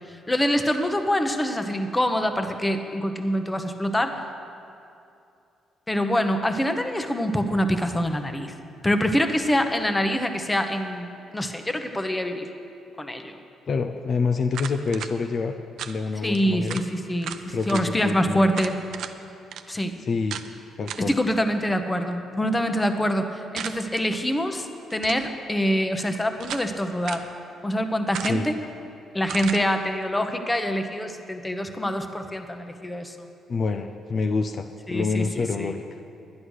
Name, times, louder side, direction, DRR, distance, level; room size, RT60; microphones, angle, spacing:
voice 1, 0.1-4.2 5.9-8.5 8.8-12.5 13.0-13.3 16.2-18.8 19.7-19.9 21.1-27.2 27.6-28.5 29.1-33.2 34.9-35.7, equal, 15° left, 7 dB, 0.9 m, -25 dB
voice 2, 13.7-15.5 15.9-16.8 17.5-18.5 20.0-20.4 20.8-21.1 28.2-28.5 33.5-35.8, left 4 dB, 50° left, 6 dB, 0.5 m, -27 dB
sound 1, 14.5-15.1 15.8-16.0 16.3-16.4 16.7-16.9 17.2-17.9 18.5-19.1 19.5-19.6 20.3-20.5 20.9-21.2 23.6-24.0 24.9-25.3 26.0-26.7 27.0-27.3 28.1-28.6 29.3-29.6, right 9 dB, 75° right, 0.6 m, -35 dB
11.5 x 9.7 x 6.3 m, 2.6 s
cardioid pair, 90°, 0 cm